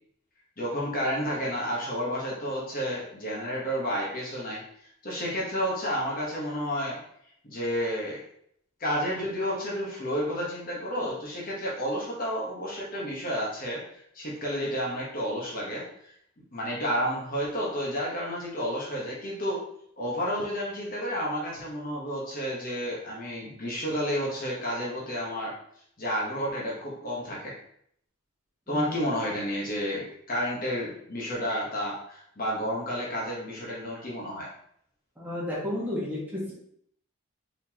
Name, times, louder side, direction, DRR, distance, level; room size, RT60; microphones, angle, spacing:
voice 1, 0.6-4.6 5.0-7.0 7.4-8.2 8.8-13.8 14.1-15.8 16.5-19.6 20.0-25.5 26.0-27.5 28.7-34.5, equal, 40° left, -4 dB, 1.1 m, -31 dB
voice 2, 28.7-29.0 35.2-36.5, left 1 dB, 10° right, -7 dB, 1.3 m, -32 dB
4.1 x 3.9 x 2.9 m, 0.69 s
head